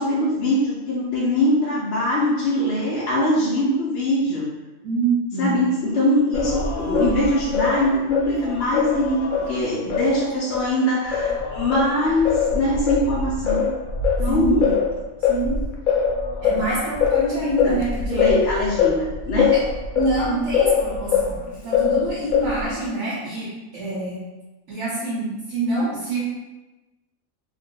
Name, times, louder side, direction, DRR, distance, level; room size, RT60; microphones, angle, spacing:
voice 1, 0.0-4.5 5.4-13.7 14.2-14.7 17.3-17.8 18.1-19.5, left 1 dB, 60° left, -6 dB, 0.8 m, -22 dB
voice 2, 4.8-5.6 14.3-14.6 15.3-15.6 16.4-18.3 19.9-24.2 24.7-26.2, right 2 dB, 65° right, -8 dB, 1.1 m, -26 dB
Singing, 6.3-10.7 11.1-21.4 21.7-22.7, left 6 dB, 80° left, 1.0 m, -23 dB
2.8 x 2.0 x 3.6 m, 1.1 s
omnidirectional pair, 1.4 m